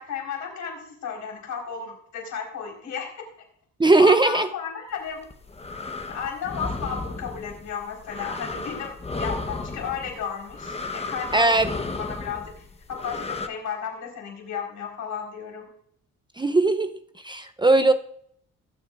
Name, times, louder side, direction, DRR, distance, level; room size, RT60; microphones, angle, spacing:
voice 1, 0.0-3.1 4.0-5.3 6.1-11.5 12.0-15.7, left 6 dB, 75° left, 1 dB, 4.5 m, -33 dB
voice 2, 3.8-4.5 11.3-11.7 16.4-16.9 17.2-17.9, right 2 dB, 15° right, 9 dB, 0.6 m, -18 dB
sound 1, 5.1-13.5, left 3 dB, 20° left, 1.1 m, -34 dB
21.0 x 8.3 x 2.5 m, 0.66 s
cardioid pair, 90°, 30 cm